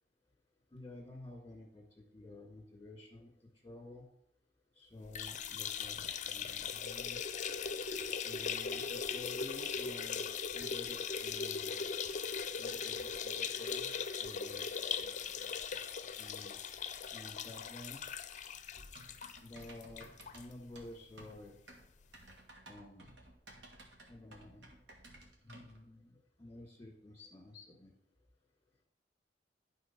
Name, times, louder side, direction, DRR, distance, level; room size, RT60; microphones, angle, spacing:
voice 1, 0.7-3.3 3.6-4.0 4.7-7.2 8.2-10.3 10.5-11.9 12.6-13.9 14.2-14.6 15.0-15.6 15.9-16.5 17.1-18.0 19.4-20.1 20.3-21.6 22.7-23.1 24.1-24.7 25.4-27.9, left 2 dB, 15° left, 0 dB, 1.7 m, -51 dB
sound 1, 5.0-20.4 20.8-20.9 21.2-21.3 22.3-22.4, left 6 dB, 45° left, 0.5 m, -39 dB
Typing, 18.8-25.8, right 1 dB, 80° right, 1.7 m, -56 dB
10.5 x 4.1 x 5.8 m, 0.70 s
head